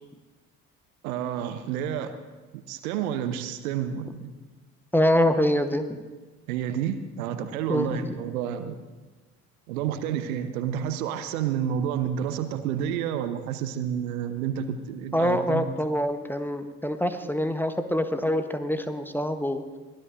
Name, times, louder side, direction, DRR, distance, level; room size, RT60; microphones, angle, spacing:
voice 1, 1.0-2.2 2.5-4.3 6.5-8.8 9.7-15.7, right 9 dB, 70° right, 10 dB, 0.9 m, -30 dB
voice 2, 4.9-6.0 7.7-8.1 15.1-19.6, equal, 5° left, 9 dB, 0.9 m, -25 dB
23.0 x 15.5 x 2.5 m, 1.3 s
figure-of-eight pair, 55°, 44 cm